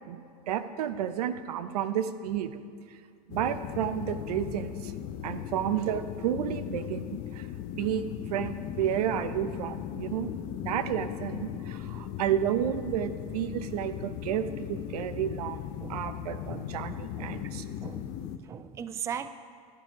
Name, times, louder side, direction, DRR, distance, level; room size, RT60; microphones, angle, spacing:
voice 1, 0.1-2.6 3.3-4.9 5.2-7.1 7.3-7.5 7.7-8.0 8.3-10.3 10.6-15.6 15.9-17.6, right 10 dB, 80° right, 11 dB, 0.9 m, -31 dB
sound 1, 3.3-18.4, left 11 dB, 45° left, 0.8 m, -38 dB
voice 2, 16.5-16.8 17.2-19.3, right 8 dB, 15° right, 12 dB, 0.4 m, -39 dB
15.0 x 11.5 x 5.0 m, 2.1 s
supercardioid pair, 130°, 20 cm